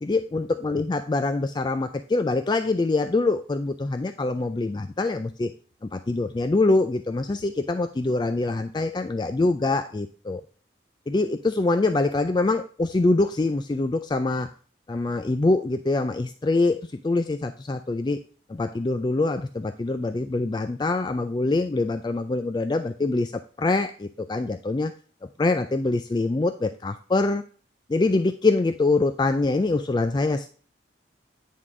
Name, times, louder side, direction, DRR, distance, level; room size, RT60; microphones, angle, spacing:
voice 1, 0.0-5.5 5.9-10.4 11.1-14.5 14.9-18.2 18.5-24.9 25.2-27.4 27.9-30.5, left 2 dB, 25° left, 9 dB, 0.3 m, -24 dB
9.8 x 3.7 x 4.8 m, 0.41 s
head